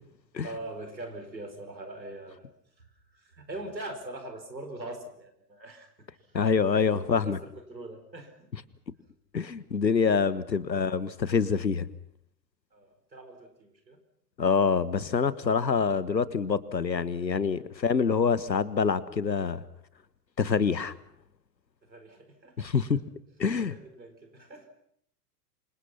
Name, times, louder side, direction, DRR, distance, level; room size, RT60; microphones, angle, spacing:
voice 1, 0.4-2.5 2.8-2.9 3.1-5.9 6.4-8.5 10.5-10.6 12.7-14.0 21.8-23.0 23.4-24.7, right 2 dB, 85° right, 7 dB, 4.9 m, -43 dB
voice 2, 6.3-7.4 9.3-11.9 14.4-19.6 20.4-20.9 22.6-23.0 23.4-23.7, left 5 dB, 85° left, 17 dB, 1.5 m, -26 dB
28.0 x 26.0 x 5.9 m, 0.69 s
figure-of-eight pair, 90°, 50 cm